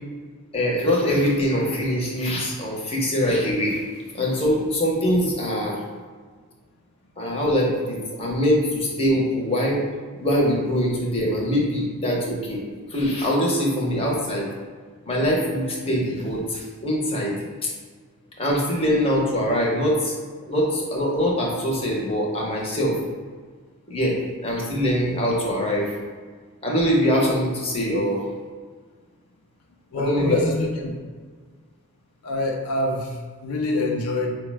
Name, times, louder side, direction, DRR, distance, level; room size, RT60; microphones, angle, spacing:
voice 1, 0.5-3.8 4.1-5.8 7.2-9.8 10.2-12.6 12.9-14.5 15.1-17.3 18.4-20.2 20.5-23.0 23.9-24.2 24.4-25.9 26.6-28.2 29.9-30.4, equal, 25° left, -2 dB, 0.8 m, -23 dB
voice 2, 29.9-30.9 32.2-34.3, left 2 dB, 80° left, 0 dB, 0.5 m, -25 dB
4.6 x 2.1 x 4.6 m, 1.5 s
head